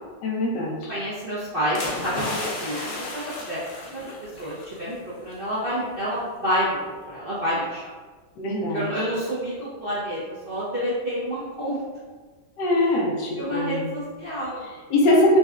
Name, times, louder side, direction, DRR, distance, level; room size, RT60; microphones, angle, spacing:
voice 1, 0.2-0.9 8.4-8.9 12.6-13.8 14.6-15.4, left 1 dB, 75° left, -2 dB, 1.4 m, -22 dB
voice 2, 0.9-2.3 2.6-3.6 3.9-4.0 4.4-4.9 5.2-6.8 7.1-7.8 8.7-11.8 13.4-14.6, equal, 50° right, -10 dB, 0.7 m, -28 dB
sound 1, 1.7-4.8 5.1-5.3, left 2 dB, 60° left, 0.6 m, -32 dB
4.1 x 2.2 x 3.6 m, 1.4 s
omnidirectional pair, 2.0 m